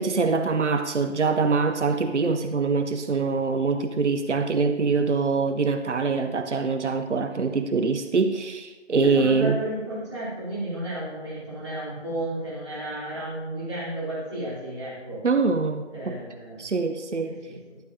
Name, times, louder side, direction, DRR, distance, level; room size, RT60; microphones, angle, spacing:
voice 1, 0.0-9.6 15.2-16.2 16.6-17.4, right 4 dB, 75° right, 8 dB, 0.7 m, -24 dB
voice 2, 8.9-15.2 15.9-16.6 17.2-17.8, right 1 dB, 25° right, -9 dB, 3.0 m, -33 dB
12.5 x 8.4 x 2.7 m, 1.2 s
figure-of-eight pair, 165°, 36 cm